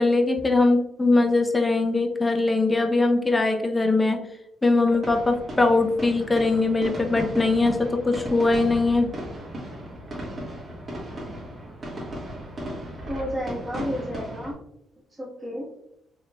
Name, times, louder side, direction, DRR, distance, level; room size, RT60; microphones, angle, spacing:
voice 1, 0.0-4.2 4.6-9.1, left 3 dB, 20° left, 4 dB, 0.5 m, -21 dB
sound 1, 4.8-14.5, right 1 dB, 40° right, 1.4 m, -36 dB
voice 2, 13.1-14.6 15.1-15.7, equal, 15° right, -6 dB, 1.2 m, -31 dB
3.8 x 3.2 x 2.2 m, 0.80 s
cardioid pair, 90°, 0 cm